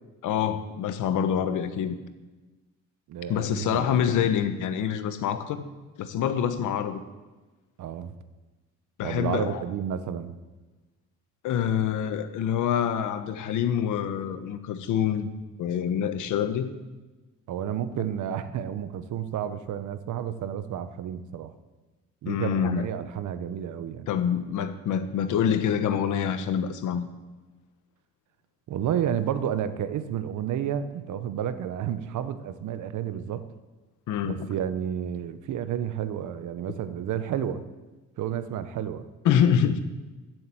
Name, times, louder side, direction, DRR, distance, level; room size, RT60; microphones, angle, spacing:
voice 1, 0.2-2.0 3.3-5.6 6.0-7.0 9.0-9.6 11.4-15.3 15.6-16.7 22.3-22.9 24.1-27.1 34.1-34.5 39.2-39.8, left 8 dB, 85° left, 10 dB, 1.3 m, -26 dB
voice 2, 3.1-3.9 4.1-4.2 7.8-8.1 9.0-10.4 17.5-21.5 22.2-24.1 28.7-33.4 34.2-37.6 38.2-39.1, right 9 dB, 80° right, 12 dB, 1.1 m, -31 dB
15.5 x 7.8 x 7.8 m, 1.2 s
cardioid pair, 90°, 30 cm